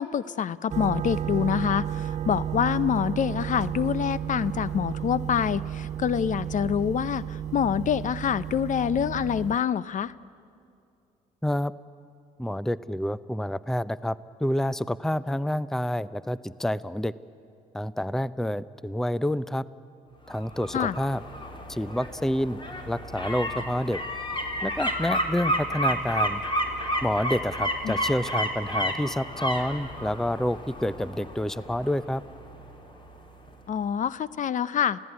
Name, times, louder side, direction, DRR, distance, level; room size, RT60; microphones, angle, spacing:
voice 1, 0.0-10.1 20.7-20.9 27.8-27.9 33.7-35.0, left 8 dB, 50° left, 18 dB, 0.7 m, -26 dB
sound 1, 0.7-9.6, right 10 dB, 45° right, 0.6 m, -32 dB
voice 2, 12.4-17.1 17.7-19.6 20.3-21.2 21.7-22.6 22.9-24.0 24.6-26.4 27.0-32.2, left 1 dB, ahead, 18 dB, 0.6 m, -28 dB
sound 2, 20.3-33.1 33.5-33.6, equal, 30° left, 3.6 m, -31 dB
27.5 x 16.5 x 9.4 m, 2.5 s
hypercardioid pair, 60°, 17 cm